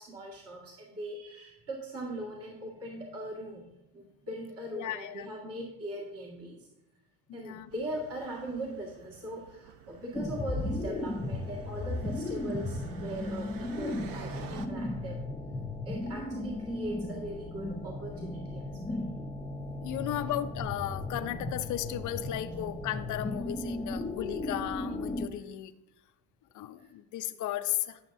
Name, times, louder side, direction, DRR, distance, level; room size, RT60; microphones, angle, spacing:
voice 1, 0.0-3.7 3.9-6.7 7.3-15.2 15.8-19.0 20.1-20.2 26.8-26.9, right 1 dB, 40° right, -3 dB, 2.0 m, -40 dB
voice 2, 4.7-5.3 7.3-7.7 19.8-25.7 26.5-28.0, left 12 dB, 55° left, 10 dB, 0.6 m, -35 dB
sound 1, 7.7-14.7, right 7 dB, 65° right, 0.9 m, -49 dB
sound 2, 10.1-25.3, left 2 dB, 10° left, 0.7 m, -36 dB
11.5 x 6.5 x 2.7 m, 0.88 s
supercardioid pair, 80°, 37 cm